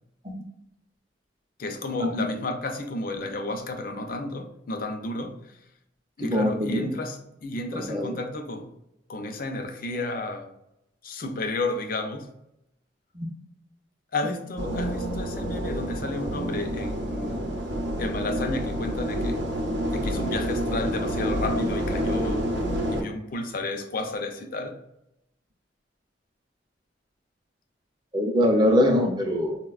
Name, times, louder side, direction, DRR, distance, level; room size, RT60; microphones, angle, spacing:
voice 1, 1.6-5.6 6.2-8.8 9.1-10.5 11.0-12.3 14.1-17.5 18.0-19.5 19.8-22.5 22.9-24.8, left 2 dB, 50° left, 0.5 m, -32 dB
voice 2, 6.2-6.8 7.7-8.2 13.1-13.3 28.1-29.6, left 1 dB, 25° right, 0.5 m, -23 dB
sound 1, 14.6-23.0, equal, 80° right, 0.7 m, -28 dB
3.9 x 2.1 x 2.3 m
head